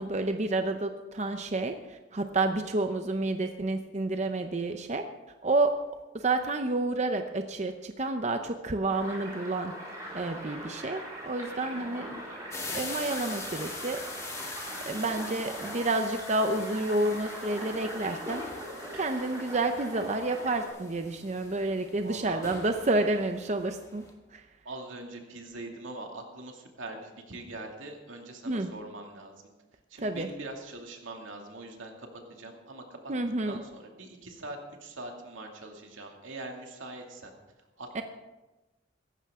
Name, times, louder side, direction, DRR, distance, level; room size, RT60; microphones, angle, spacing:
voice 1, 0.0-5.0 5.4-5.9 6.1-9.7 10.1-12.1 12.7-14.0 14.9-18.4 18.9-24.0 24.3-24.4 28.5-28.7 30.0-30.3 33.1-33.6 37.9-38.0, right 2 dB, 35° right, 6 dB, 0.6 m, -29 dB
sound 1, 8.9-20.7, equal, 20° right, 4.5 m, -41 dB
sound 2, 12.5-24.1, left 3 dB, 15° left, 1.9 m, -43 dB
voice 2, 21.9-22.4 24.6-29.3 29.9-33.1 33.5-37.3 37.8-38.0, right 2 dB, 85° right, 2 dB, 2.3 m, -42 dB
16.5 x 14.0 x 3.6 m, 1.1 s
head